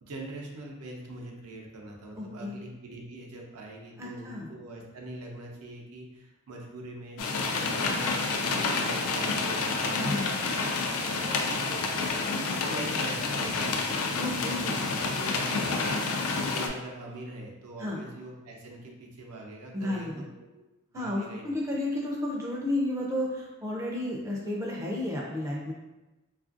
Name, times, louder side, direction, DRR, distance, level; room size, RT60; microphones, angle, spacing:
voice 1, 0.0-10.3 10.9-20.6 20.9-21.5, right 2 dB, 90° right, -1 dB, 0.6 m, -43 dB
voice 2, 2.2-2.6 4.0-4.5 9.9-10.3 14.2-14.8 17.8-18.0 19.7-20.1 20.9-25.7, left 1 dB, 15° right, -3 dB, 0.4 m, -32 dB
sound 1, 7.2-16.7, left 3 dB, 75° left, 0.4 m, -29 dB
3.2 x 2.4 x 2.4 m, 1.1 s
head